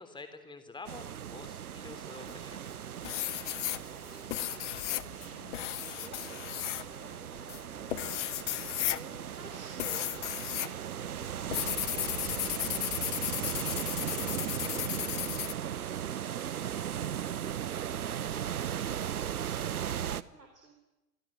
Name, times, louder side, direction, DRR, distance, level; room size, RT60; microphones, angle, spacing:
voice 1, 0.0-2.6, left 3 dB, 10° left, 9 dB, 3.6 m, -47 dB
sound 1, 0.9-20.2, right 9 dB, 65° right, 1.1 m, -37 dB
sound 2, 2.3-2.7 3.0-10.7 11.0-15.5, left 14 dB, 50° left, 1.1 m, -35 dB
voice 2, 3.1-3.5 3.7-4.6 4.9-7.5 8.7-18.2 18.7-20.8, right 3 dB, 85° right, 3 dB, 3.8 m, -54 dB
27.5 x 23.5 x 7.8 m, 1.0 s
figure-of-eight pair, 95°, 47 cm